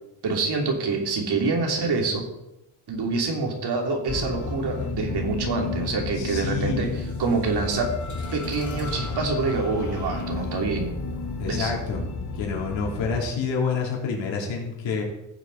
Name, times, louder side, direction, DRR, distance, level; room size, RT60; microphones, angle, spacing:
voice 1, 0.2-2.3 2.9-7.9 8.3-10.9 11.4-11.7, right 3 dB, 60° right, 2 dB, 3.0 m, -26 dB
sound 1, 4.1-13.2, left 3 dB, 40° left, 2.2 m, -32 dB
voice 2, 6.1-6.9 11.4-12.0 12.4-15.0, left 5 dB, 75° left, -1 dB, 3.4 m, -28 dB
15.5 x 7.4 x 4.1 m, 0.92 s
supercardioid pair, 70°, 45 cm